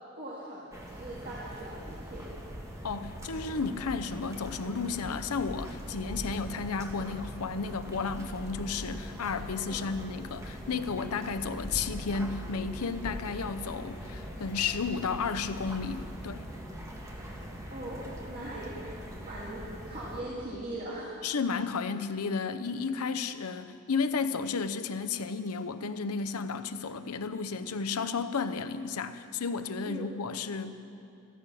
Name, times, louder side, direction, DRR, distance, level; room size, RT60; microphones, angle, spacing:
voice 1, 0.2-2.3 9.7-9.9 17.7-18.7 19.2-19.6 19.9-21.2 29.9-30.1, right 1 dB, 40° right, 2.1 m, -40 dB
sound 1, 0.7-20.2, equal, 15° right, 1.5 m, -42 dB
voice 2, 2.8-16.5 21.2-30.7, left 5 dB, 80° left, 0.7 m, -33 dB
14.0 x 13.5 x 6.2 m
head